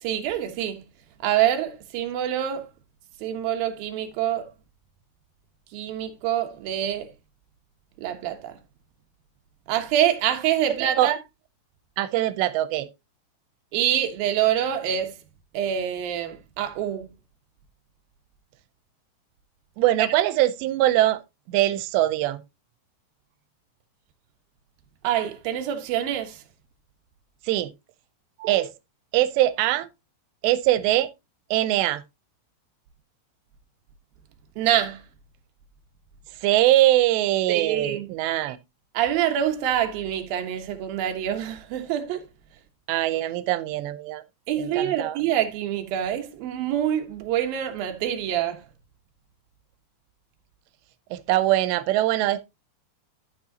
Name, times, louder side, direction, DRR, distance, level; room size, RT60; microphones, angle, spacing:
voice 1, 0.0-0.8 1.2-2.7 3.2-4.5 5.7-7.1 8.0-8.6 9.7-11.2 13.7-15.2 15.5-17.1 20.0-20.1 25.0-26.4 28.4-28.6 34.6-35.0 37.5-38.1 38.9-42.3 44.5-48.6, right 10 dB, 70° right, 2.7 m, -26 dB
voice 2, 12.0-12.9 19.8-21.2 21.5-22.4 27.4-27.7 28.5-28.7 29.1-29.9 30.4-31.1 31.5-32.0 36.4-38.6 42.9-44.2 44.6-45.2 51.1-52.4, right 15 dB, 90° right, 2.9 m, -22 dB
13.0 x 6.2 x 2.8 m
omnidirectional pair, 4.9 m